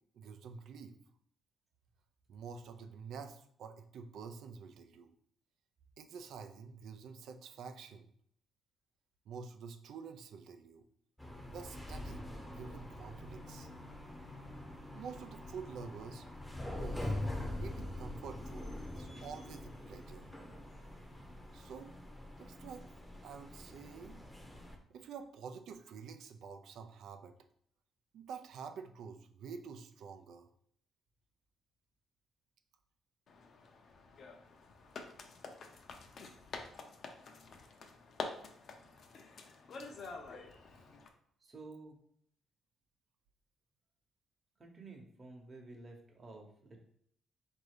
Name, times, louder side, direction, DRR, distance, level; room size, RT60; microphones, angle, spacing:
voice 1, 0.1-0.9 2.3-5.1 6.0-8.1 9.3-10.9 11.5-13.7 14.9-16.3 16.8-18.7 18.9-20.3 21.5-22.0 22.4-22.9 23.2-24.2 24.9-27.4 28.1-30.5, right 6 dB, 75° right, 7 dB, 0.5 m, -48 dB
sound 1, 11.2-24.8, left 1 dB, 5° left, 0.8 m, -44 dB
sound 2, 33.3-41.1, left 4 dB, 55° left, 0.7 m, -48 dB
voice 2, 41.4-42.0 44.6-46.8, right 3 dB, 30° right, 0 dB, 1.0 m, -52 dB
3.9 x 2.7 x 4.8 m, 0.68 s
cardioid pair, 90°, 0 cm